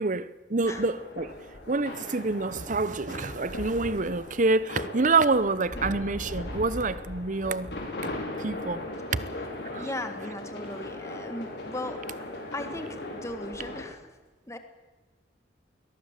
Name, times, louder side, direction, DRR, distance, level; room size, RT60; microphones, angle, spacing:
voice 1, 0.0-1.3 1.7-7.7 8.4-8.8 9.7-9.9, right 3 dB, 45° right, 0.9 m, -27 dB
sound 1, 0.6-13.8, left 1 dB, 70° left, 4.9 m, -38 dB
voice 2, 9.8-12.1 12.5-14.1 14.5-14.6, left 1 dB, 15° left, 1.7 m, -37 dB
22.0 x 19.0 x 7.6 m
head